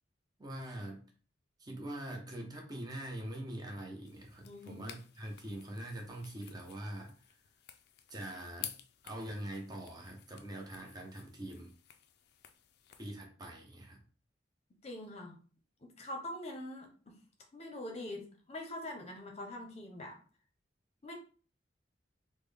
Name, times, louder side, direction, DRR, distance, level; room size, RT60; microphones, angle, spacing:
voice 1, 0.4-1.1 1.6-7.1 8.1-8.7 9.0-11.7 13.0-14.0, right 1 dB, 20° right, 1 dB, 0.7 m, -43 dB
sound 1, 4.1-13.1, left 11 dB, 60° left, 0.3 m, -52 dB
voice 2, 4.4-4.9 14.8-15.4 15.8-17.2 17.5-20.2 21.0-21.1, left 1 dB, 35° left, 2 dB, 0.7 m, -44 dB
3.6 x 2.1 x 3.4 m, 0.40 s
head